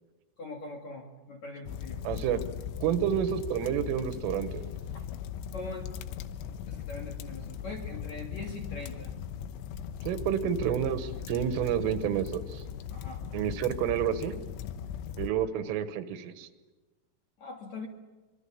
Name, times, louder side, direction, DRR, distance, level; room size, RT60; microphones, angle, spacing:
voice 1, 0.4-2.0 4.9-5.0 5.5-5.9 6.7-9.1 12.9-13.3 17.4-17.9, left 2 dB, 50° left, 1 dB, 2.3 m, -42 dB
sound 1, 1.7-15.3, left 9 dB, 75° left, 3.2 m, -39 dB
voice 2, 2.0-2.4 2.8-4.7 10.0-12.6 13.3-14.4 15.2-16.5, right 9 dB, 80° right, 10 dB, 3.7 m, -29 dB
25.5 x 25.0 x 7.2 m, 1.2 s
omnidirectional pair, 5.9 m